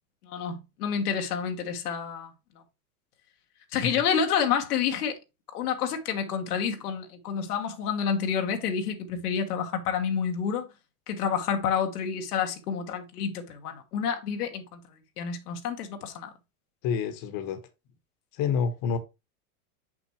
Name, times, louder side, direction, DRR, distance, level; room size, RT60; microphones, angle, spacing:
voice 1, 0.2-2.3 3.7-5.2 5.5-10.7 11.1-14.8 15.2-16.3, left 7 dB, 85° left, 1.4 m, -29 dB
voice 2, 16.8-17.6 18.3-19.0, left 6 dB, 50° left, 1.3 m, -28 dB
6.1 x 5.9 x 3.1 m
hypercardioid pair, 110°, 44 cm